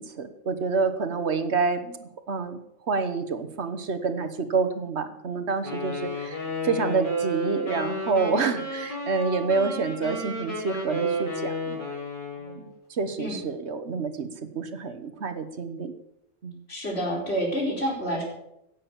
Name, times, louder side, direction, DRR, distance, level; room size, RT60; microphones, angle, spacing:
voice 1, 0.0-11.8 12.4-12.6 12.9-14.3 14.5-15.9 16.4-16.7, right 4 dB, 70° right, 9 dB, 1.4 m, -28 dB
Wind instrument woodwind instrument, 5.6-12.6, equal, 30° left, 5.7 m, -31 dB
voice 2, 16.7-18.2, equal, 60° left, -1 dB, 4.7 m, -28 dB
17.0 x 7.5 x 7.2 m, 0.83 s
omnidirectional pair, 1.2 m